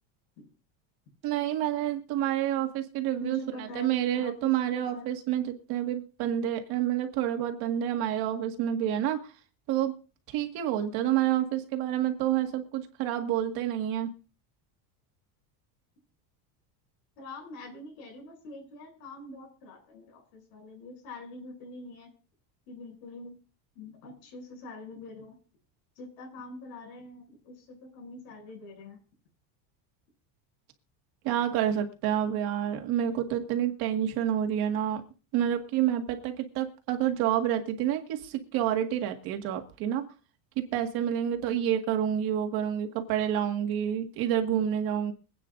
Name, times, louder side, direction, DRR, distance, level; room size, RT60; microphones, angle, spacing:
voice 1, 1.2-9.3 9.7-9.9 10.3-14.1 31.2-35.0 35.3-40.0 40.6-45.1, right 10 dB, 55° right, 4 dB, 1.9 m, -28 dB
voice 2, 3.2-5.1 17.2-22.1 22.7-23.3 23.7-25.4 26.0-29.0, left 2 dB, 70° left, 2 dB, 7.9 m, -44 dB
25.5 x 9.1 x 2.6 m, 0.36 s
cardioid pair, 170°, 44 cm